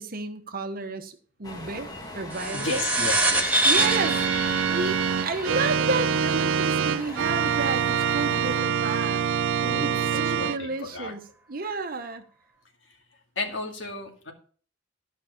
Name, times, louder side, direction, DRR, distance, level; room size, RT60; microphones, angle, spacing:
voice 1, 0.0-2.8 3.6-4.2 4.7-9.2 9.8-12.2, right 3 dB, 50° right, 1.1 m, -31 dB
sound 1, 1.4-8.6, left 2 dB, 20° left, 1.6 m, -40 dB
sound 2, 2.3-7.2, right 2 dB, 10° right, 1.3 m, -26 dB
voice 2, 2.5-3.6 9.6-11.1 13.4-14.3, left 3 dB, 80° left, 2.1 m, -34 dB
Organ, 3.7-10.6, right 7 dB, 85° right, 0.5 m, -25 dB
13.0 x 5.5 x 5.3 m
head